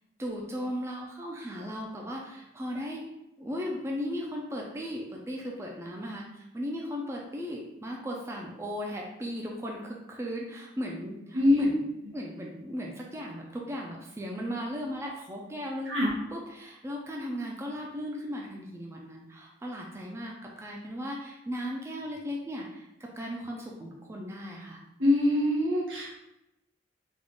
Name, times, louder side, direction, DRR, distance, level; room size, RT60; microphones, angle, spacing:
voice 1, 0.2-3.0 3.4-6.2 6.5-15.9 16.3-22.8 23.2-24.8, equal, 15° right, -1 dB, 0.4 m, -36 dB
voice 2, 11.3-11.7 15.9-16.1 25.0-26.2, left 1 dB, 85° right, -3 dB, 1.2 m, -24 dB
3.6 x 2.4 x 3.7 m, 0.89 s
head